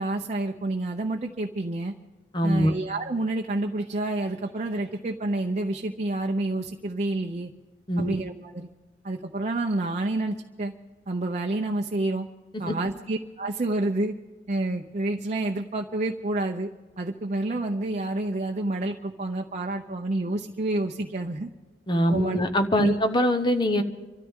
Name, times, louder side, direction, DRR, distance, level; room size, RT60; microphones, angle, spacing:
voice 1, 0.0-1.9 2.4-7.5 8.0-8.7 9.0-10.7 11.1-12.3 12.6-14.1 14.5-16.7 17.0-21.5 22.1-22.4 22.8-23.0, right 2 dB, 40° right, 3 dB, 0.7 m, -28 dB
voice 2, 2.3-2.7 7.9-8.2 12.7-12.8 21.9-23.8, equal, 25° left, 8 dB, 1.0 m, -23 dB
26.5 x 13.5 x 3.7 m, 1.3 s
head